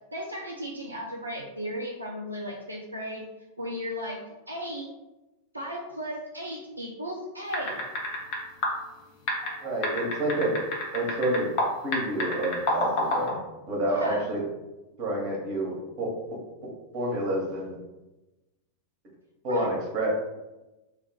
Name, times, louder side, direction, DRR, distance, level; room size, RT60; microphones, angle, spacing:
voice 1, 0.1-3.2 3.6-4.2 4.5-4.9 5.5-7.8 13.9-14.3 19.5-19.7, equal, 85° right, -2 dB, 0.4 m, -35 dB
sound 1, 7.5-8.4 8.6-8.7 9.3-11.7 11.9-13.3, left 2 dB, 45° left, 0.8 m, -27 dB
voice 2, 9.6-10.5 10.9-11.5 11.8-13.4 13.7-14.4 15.0-16.1 16.9-17.8 19.4-20.1, right 1 dB, 40° right, -2 dB, 1.0 m, -28 dB
2.5 x 2.3 x 3.6 m, 1.0 s
figure-of-eight pair, 90°, 0 cm